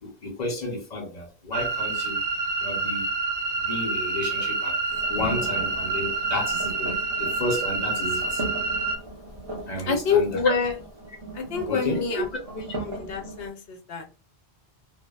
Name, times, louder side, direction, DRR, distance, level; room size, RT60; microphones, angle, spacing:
voice 1, 0.0-2.2 2.6-3.1 3.6-4.8 5.1-8.4 9.7-10.5 11.7-12.2 12.7-12.8, left 1 dB, 45° left, 0.8 m, -32 dB
sound 1, 1.5-9.0, right 4 dB, 85° right, 0.9 m, -28 dB
sound 2, 4.9-13.5, right 2 dB, 35° right, 0.8 m, -38 dB
voice 2, 9.9-10.7 11.3-12.3 12.5-14.0, left 5 dB, 70° left, 0.9 m, -26 dB
2.7 x 2.0 x 2.3 m
omnidirectional pair, 1.0 m